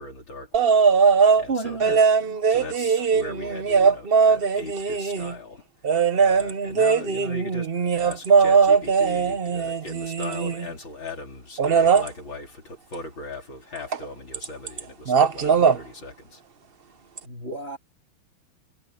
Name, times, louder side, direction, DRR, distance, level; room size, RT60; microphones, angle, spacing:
voice 1, 0.0-2.0 2.5-5.7 6.1-16.4, left 3 dB, 60° left, 4.5 m, -39 dB
sound 1, 0.5-1.4 1.8-5.3 5.8-10.7 11.6-12.1 13.9-14.0 14.3-14.8 15.1-15.8 17.2-17.3, right 5 dB, 50° right, 0.6 m, -20 dB
voice 2, 1.5-2.0 17.2-17.8, right 4 dB, 30° right, 3.2 m, -31 dB
omnidirectional pair, 2.4 m